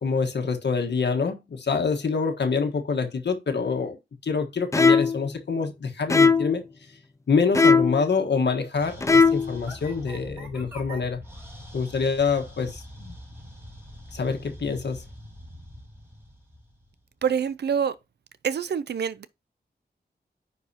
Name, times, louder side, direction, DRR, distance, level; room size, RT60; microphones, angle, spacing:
voice 1, 0.0-6.6 7.3-11.2 11.7-13.1 14.1-15.0, left 5 dB, 80° left, 1.5 m, -26 dB
sound 1, 4.7-5.2 6.1-6.6 7.5-8.0 9.0-9.5, left 4 dB, 15° left, 0.4 m, -18 dB
sound 2, 8.8-17.3, equal, 15° right, 3.1 m, -43 dB
voice 2, 17.2-17.9 18.4-19.3, right 7 dB, 75° right, 0.5 m, -26 dB
9.8 x 4.7 x 2.8 m
wide cardioid pair, 110°, 18 cm